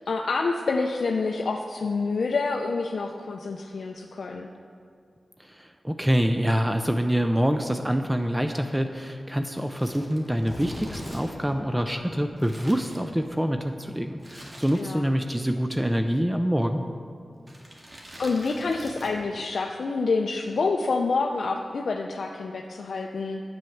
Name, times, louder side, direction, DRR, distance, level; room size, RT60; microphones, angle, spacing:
voice 1, 0.1-4.5 14.7-15.1 18.2-23.4, left 4 dB, 75° left, 2 dB, 0.4 m, -27 dB
voice 2, 5.4-16.8, equal, 10° right, 6 dB, 0.5 m, -26 dB
Thunder, 9.2-16.4 17.5-19.2, left 1 dB, 45° left, 1.5 m, -46 dB
Crumpling crinkling, 9.6-13.5 14.2-15.2 15.5-15.6 16.4-16.7 17.4-19.3 19.6-19.7, right 1 dB, 40° right, 1.9 m, -47 dB
7.9 x 7.6 x 5.7 m, 2.3 s
cardioid pair, 45°, 0 cm